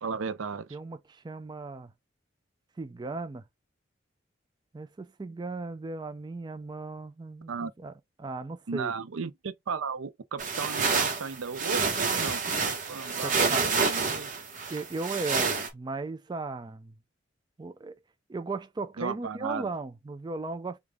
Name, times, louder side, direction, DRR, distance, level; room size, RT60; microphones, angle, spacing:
voice 1, 0.0-0.8 7.5-7.7 8.7-14.3 19.0-19.7, right 5 dB, 85° right, 0.5 m, -35 dB
voice 2, 0.7-1.9 2.8-3.4 4.7-7.9 8.2-8.9 13.2-13.8 14.7-17.0 17.6-18.0 18.3-20.8, right 3 dB, 20° right, 0.3 m, -36 dB
sound 1, 10.4-15.7, right 4 dB, 40° right, 1.0 m, -28 dB
5.0 x 2.4 x 3.4 m
head